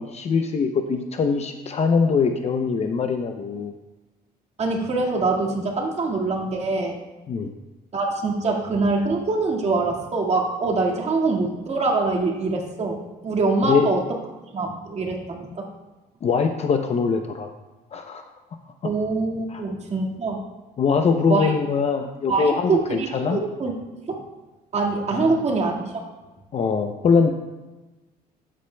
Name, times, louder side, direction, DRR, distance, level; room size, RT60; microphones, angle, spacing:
voice 1, 0.0-3.7 7.3-7.5 13.7-13.9 16.2-17.5 17.9-18.2 18.8-18.9 19.5-19.6 20.8-23.4 25.1-25.4 26.5-27.3, left 5 dB, 40° left, 5 dB, 0.6 m, -22 dB
voice 2, 4.6-7.0 7.9-14.0 14.5-15.7 18.8-20.4 21.3-21.5 22.3-23.7 24.1-24.2 24.7-26.0, right 3 dB, 40° right, -1 dB, 1.9 m, -24 dB
13.0 x 8.5 x 2.3 m, 1.2 s
cardioid pair, 110°, 17 cm